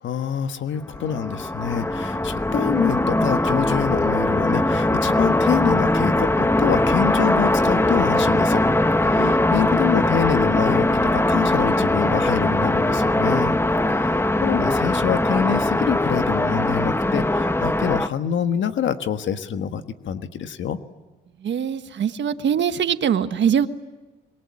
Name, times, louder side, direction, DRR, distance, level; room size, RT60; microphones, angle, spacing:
voice 1, 0.0-8.6 9.0-13.6 13.9-20.8, left 8 dB, 80° left, 9 dB, 1.5 m, -26 dB
sound 1, 0.9-18.1, left 1 dB, 10° left, 1.0 m, -21 dB
voice 2, 9.2-9.5 21.4-23.7, right 8 dB, 70° right, 10 dB, 1.5 m, -23 dB
27.0 x 22.5 x 9.7 m, 1.2 s
cardioid pair, 105°, 19 cm